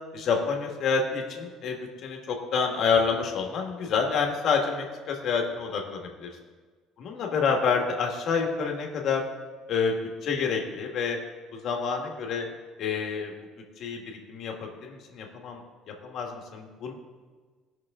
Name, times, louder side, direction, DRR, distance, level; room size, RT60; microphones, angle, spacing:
voice 1, 0.1-6.3 7.0-9.2 9.7-10.0 10.2-11.2 11.5-12.5 12.8-13.4 13.8-16.9, left 5 dB, 45° left, 1 dB, 1.6 m, -28 dB
17.5 x 6.0 x 3.7 m, 1.4 s
cardioid pair, 160°, 0 cm